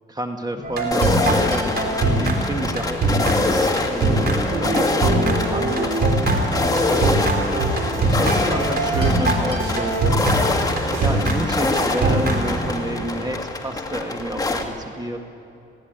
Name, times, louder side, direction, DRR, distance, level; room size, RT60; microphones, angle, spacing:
voice 1, 0.2-1.7 2.0-4.3 4.6-5.9 6.5-7.5 8.0-10.2 11.0-15.2, right 1 dB, 20° right, 5 dB, 1.5 m, -30 dB
sound 1, 0.6-13.0, right 2 dB, 50° right, 4.0 m, -22 dB
sound 2, 0.9-14.6, left 3 dB, 20° left, 1.8 m, -25 dB
sound 3, 5.7-11.5, right 2 dB, 85° right, 4.6 m, -29 dB
20.5 x 15.5 x 9.1 m, 2.6 s
cardioid pair, 90°, 20 cm